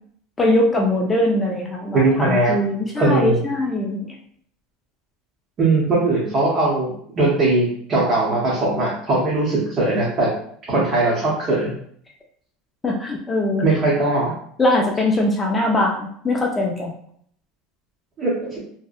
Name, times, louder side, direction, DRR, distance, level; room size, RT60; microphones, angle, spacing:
voice 1, 0.4-4.1 12.8-13.6 14.6-16.9, left 1 dB, 15° left, -1 dB, 0.3 m, -21 dB
voice 2, 1.9-2.6 3.0-3.4 5.6-10.3 10.7-11.7 13.6-14.3 18.2-18.6, right 2 dB, 35° right, -6 dB, 0.7 m, -20 dB
2.7 x 2.1 x 2.4 m, 0.63 s
supercardioid pair, 135°, 0 cm